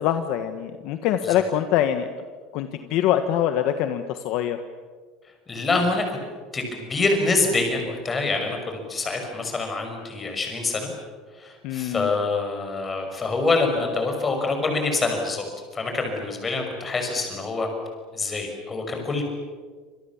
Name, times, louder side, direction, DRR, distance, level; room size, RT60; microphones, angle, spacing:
voice 1, 0.0-2.1 2.5-4.6 11.6-12.1, left 10 dB, 55° left, 8 dB, 1.5 m, -24 dB
voice 2, 5.5-6.2 6.5-10.9 11.4-15.4 15.7-17.7 18.1-19.2, left 3 dB, 15° left, 3 dB, 6.0 m, -25 dB
27.5 x 27.0 x 7.3 m, 1.5 s
cardioid pair, 160°, 0 cm